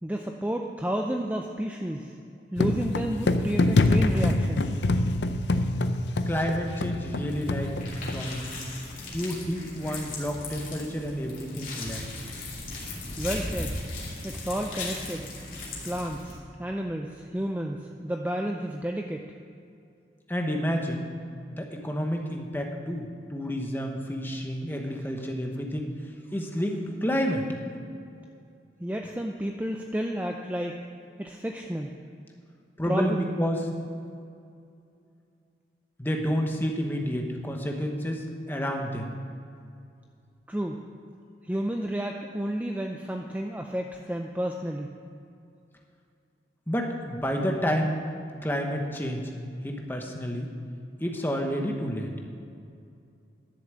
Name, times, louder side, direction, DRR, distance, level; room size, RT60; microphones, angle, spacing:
voice 1, 0.0-2.1 2.5-4.7 13.2-13.8 14.2-15.3 15.8-19.3 28.8-30.8 31.2-31.9 32.9-33.2 40.5-40.8 41.4-44.9, equal, 10° right, 2 dB, 0.4 m, -31 dB
sound 1, 2.6-8.4, left 2 dB, 85° left, 0.6 m, -25 dB
voice 2, 6.3-7.7 8.1-8.6 9.1-12.0 20.3-21.1 21.6-25.9 26.3-27.6 32.8-33.7 36.0-39.1 46.7-48.0 48.4-49.3 49.6-50.5 51.0-52.1, equal, 10° left, 2 dB, 1.1 m, -29 dB
sound 2, 7.3-16.4, left 2 dB, 45° left, 2.6 m, -37 dB
11.5 x 7.1 x 7.6 m, 2.5 s
head